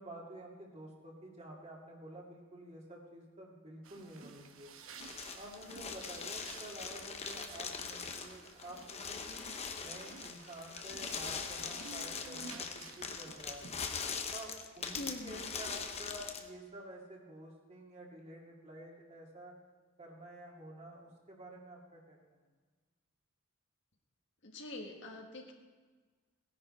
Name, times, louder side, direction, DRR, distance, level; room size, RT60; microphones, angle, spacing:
voice 1, 0.0-4.7 5.3-9.3 9.8-13.6 14.3-19.5 20.0-22.2, right 1 dB, 30° right, -2 dB, 2.4 m, -50 dB
sound 1, 3.8-13.8, right 5 dB, 75° right, 1.0 m, -53 dB
sound 2, 5.0-16.5, left 5 dB, 30° left, 0.9 m, -42 dB
voice 2, 14.9-15.5 24.4-25.5, left 1 dB, 60° left, 2 dB, 1.7 m, -44 dB
18.0 x 10.5 x 4.4 m, 1.4 s
head